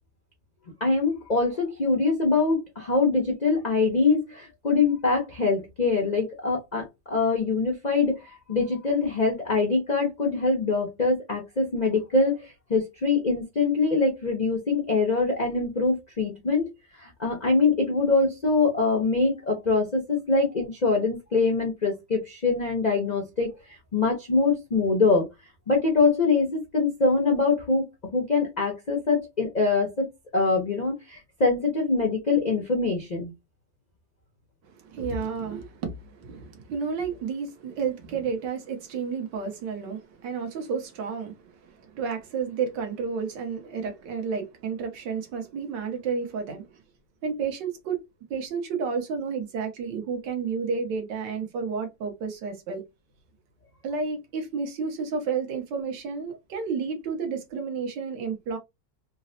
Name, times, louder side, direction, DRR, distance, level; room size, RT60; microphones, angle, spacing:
voice 1, 0.8-16.7 17.0-23.5 23.9-25.3 25.7-27.9 28.1-33.3, left 3 dB, 70° left, 0.4 m, -24 dB
voice 2, 34.6-46.8 47.2-48.0 48.3-52.8 53.8-58.6, right 5 dB, 85° right, 1.5 m, -31 dB
3.8 x 2.0 x 2.6 m
omnidirectional pair, 1.9 m